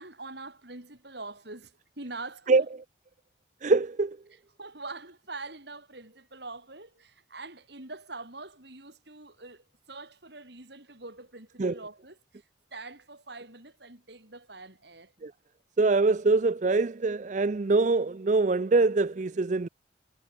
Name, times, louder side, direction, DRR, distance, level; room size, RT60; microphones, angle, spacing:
voice 1, 0.0-2.7 4.6-15.1, right 3 dB, 60° right, 4.0 m, -44 dB
voice 2, 3.6-4.2 11.6-11.8 15.2-15.3 15.8-19.7, right 3 dB, 40° right, 0.4 m, -24 dB
head